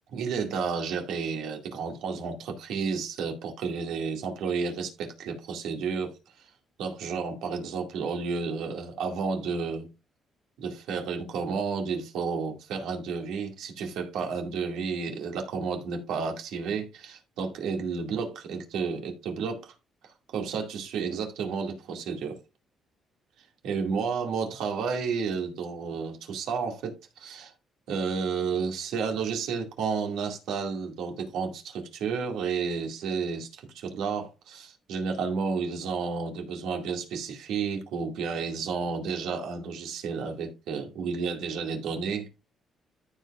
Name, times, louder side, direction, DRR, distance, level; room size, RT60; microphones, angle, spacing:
voice 1, 0.1-6.2 6.8-9.9 10.6-19.7 20.0-22.4 23.6-27.5 27.9-42.3, right 5 dB, 90° right, 2.2 m, -31 dB
14.5 x 5.5 x 2.5 m
cardioid pair, 120°, 0 cm